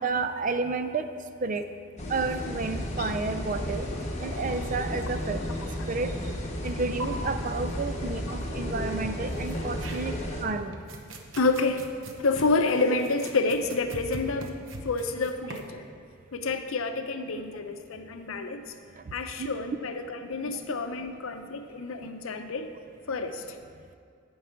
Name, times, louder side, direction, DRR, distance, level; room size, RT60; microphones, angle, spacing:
voice 1, 0.0-1.1 1.4-1.7 2.1-3.9 4.2-5.4 5.9-6.1 6.6-10.8 19.4-19.5, right 4 dB, 40° right, 9 dB, 0.4 m, -31 dB
sound 1, 2.0-10.4, left 1 dB, 35° left, 1.2 m, -33 dB
sound 2, 6.7-6.8 7.0-7.1 9.3-10.3 10.7-15.7, right 1 dB, 70° right, 0.9 m, -42 dB
voice 2, 11.4-11.9 12.2-14.6 14.8-15.8 16.3-18.6 19.1-22.7 23.1-23.4, left 3 dB, 80° left, 7 dB, 0.7 m, -28 dB
9.4 x 4.8 x 7.1 m, 2.3 s
head